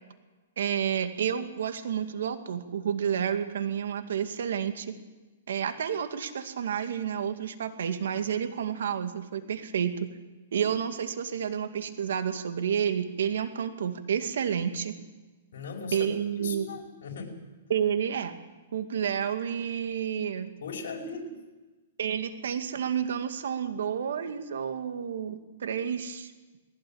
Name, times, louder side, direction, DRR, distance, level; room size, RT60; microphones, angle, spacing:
voice 1, 0.6-4.9 5.5-10.1 10.5-14.9 15.9-16.7 17.7-18.4 18.7-20.5 22.0-26.3, right 8 dB, 75° right, 8 dB, 2.2 m, -30 dB
voice 2, 15.5-16.1 16.4-17.4 20.6-21.4, left 4 dB, 70° left, 2 dB, 5.4 m, -38 dB
20.0 x 17.0 x 8.8 m, 1.2 s
hypercardioid pair, 150°, 0 cm